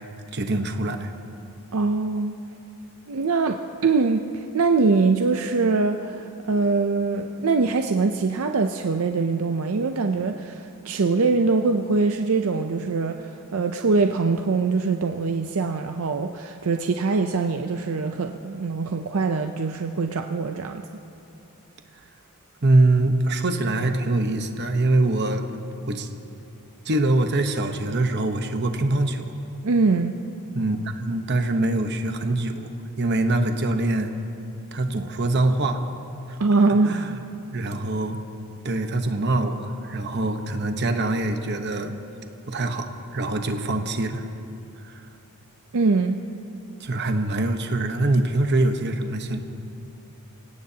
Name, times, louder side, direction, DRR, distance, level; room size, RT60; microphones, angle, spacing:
voice 1, 0.3-1.1 22.6-25.5 25.9-26.1 26.8-29.3 30.5-32.7 33.0-34.1 34.7-35.8 36.3-36.4 36.8-37.2 37.5-38.2 38.6-41.9 42.5-44.3 44.8-45.0 46.8-49.4, right 2 dB, 50° right, 6 dB, 1.0 m, -24 dB
voice 2, 1.7-2.3 3.1-20.9 29.6-30.2 36.4-36.9 45.7-46.2, right 4 dB, 70° right, 5 dB, 0.6 m, -23 dB
26.0 x 17.0 x 2.9 m, 2.8 s
head